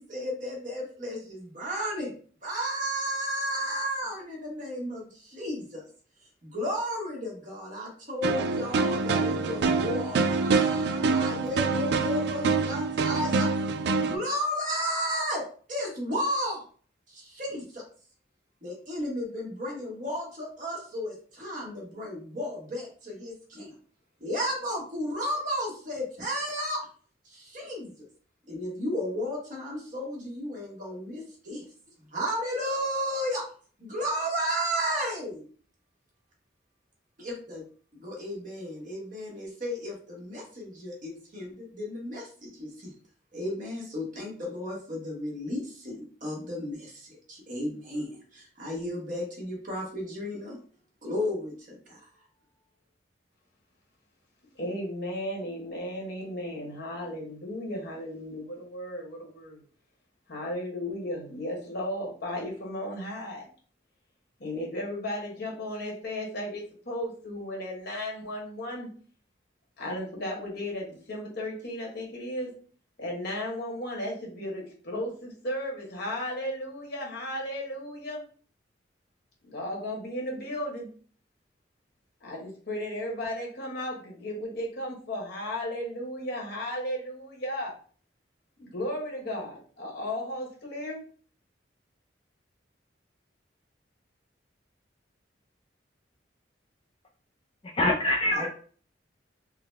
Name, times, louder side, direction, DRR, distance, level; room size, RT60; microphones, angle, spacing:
voice 1, 0.0-2.1 2.4-5.8 6.4-13.5 14.0-15.4 15.7-16.6 17.1-17.8 18.6-23.7 24.2-26.8 27.2-27.9 28.5-31.7 32.1-33.4 33.8-35.4 37.2-37.6 37.9-42.9 43.3-50.6 51.0-52.0 98.3-98.5, equal, 45° right, -2 dB, 1.2 m, -33 dB
sound 1, 8.2-14.2, right 4 dB, 60° right, 0.3 m, -26 dB
voice 2, 54.6-59.6 60.3-63.4 64.4-68.9 69.8-72.5 73.0-78.2 79.5-80.9 82.2-87.7 88.6-91.0, left 1 dB, 65° left, -1 dB, 1.2 m, -35 dB
voice 3, 97.6-98.5, left 1 dB, 30° left, -1 dB, 0.4 m, -25 dB
3.8 x 2.1 x 3.2 m, 0.43 s
head